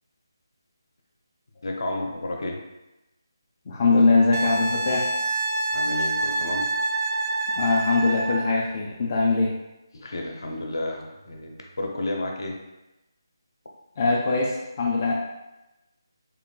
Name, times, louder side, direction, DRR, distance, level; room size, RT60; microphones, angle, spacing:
voice 1, 1.6-2.6 5.7-6.7 9.9-12.6, left 1 dB, 65° left, 1 dB, 0.7 m, -31 dB
voice 2, 3.7-5.1 7.6-9.5 14.0-15.1, left 3 dB, 25° left, -3 dB, 0.4 m, -22 dB
Wind instrument woodwind instrument, 4.3-8.6 11.3-11.4, right 2 dB, 50° right, 0.3 m, -27 dB
3.6 x 2.3 x 3.7 m, 0.98 s
figure-of-eight pair, 170°, 2 cm